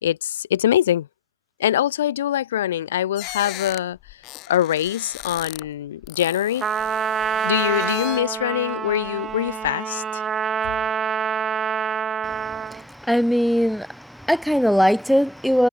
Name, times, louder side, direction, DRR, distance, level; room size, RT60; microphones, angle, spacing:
voice 1, 0.0-1.1 1.6-6.6 7.4-10.2, left 11 dB, 85° left, 2.7 m, -23 dB
sound 1, 3.2-5.7 6.0-8.4 8.9-9.7, left 19 dB, 40° left, 1.6 m, -38 dB
Trumpet, 6.6-12.8, right 7 dB, 20° right, 1.4 m, -26 dB
voice 2, 12.3-15.7, equal, ahead, 0.5 m, -21 dB
supercardioid pair, 135°, 0 cm